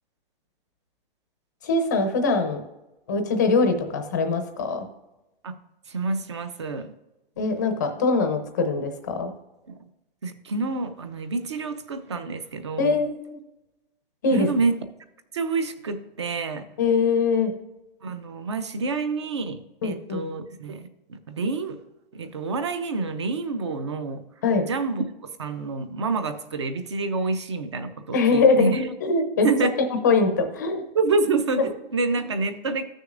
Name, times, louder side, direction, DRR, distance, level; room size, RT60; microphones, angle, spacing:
voice 1, 1.6-2.6 3.1-4.9 7.4-9.3 12.8-13.4 14.2-14.5 16.8-17.5 19.8-20.2 24.4-24.6 28.1-28.7 29.0-29.5 30.0-30.8, left 4 dB, 20° left, 6 dB, 0.6 m, -22 dB
voice 2, 5.9-6.9 9.7-9.9 10.2-12.9 14.3-14.7 15.3-16.6 18.0-21.8 22.1-24.2 24.7-28.9 29.4-29.7 30.9-32.8, right 3 dB, 30° right, 10 dB, 0.5 m, -27 dB
15.0 x 6.4 x 2.5 m, 0.99 s
hypercardioid pair, 175°, 30 cm